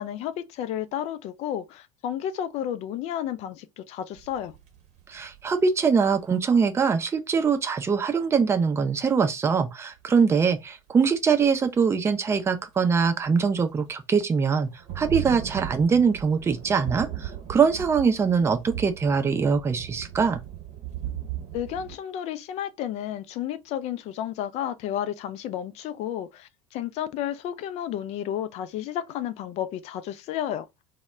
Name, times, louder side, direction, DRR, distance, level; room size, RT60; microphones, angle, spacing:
voice 1, 0.0-4.5 21.5-30.6, left 10 dB, 45° left, 0.4 m, -32 dB
sound 1, 4.2-6.4 10.0-10.4 10.9-11.1 12.4-12.5 13.2-13.3 13.6-13.9 14.5-22.0, right 11 dB, 50° right, 0.8 m, -37 dB
voice 2, 5.1-14.7 15.0-20.4, right 5 dB, 15° right, 0.4 m, -23 dB
2.1 x 2.1 x 3.4 m
figure-of-eight pair, 70°, 15 cm